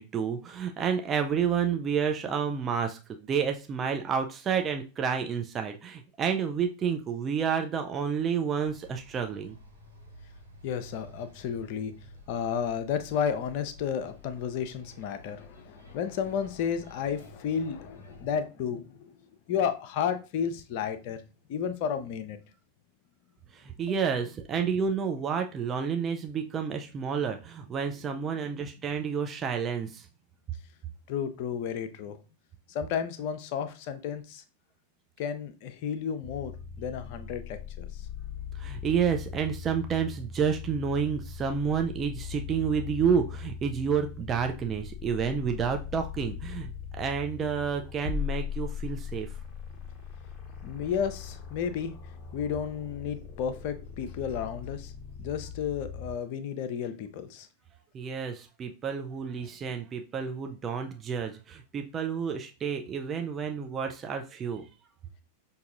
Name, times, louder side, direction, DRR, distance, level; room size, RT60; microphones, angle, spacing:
voice 1, 0.0-9.6 23.5-30.1 38.5-49.3 57.9-64.7, right 6 dB, 25° right, 0.4 m, -30 dB
sound 1, 8.6-18.4, left 1 dB, 75° right, 1.0 m, -51 dB
voice 2, 10.6-11.9 12.3-19.1 19.5-21.2 21.5-22.4 23.9-24.1 28.2-28.5 31.1-32.2 32.7-34.4 35.2-36.5 36.8-38.1 50.6-51.9 52.3-54.9 55.2-57.5 59.4-59.5, left 7 dB, 45° left, 0.5 m, -32 dB
sound 2, 36.2-56.2, left 7 dB, 25° left, 0.9 m, -40 dB
5.6 x 2.6 x 2.5 m
figure-of-eight pair, 90°, 0 cm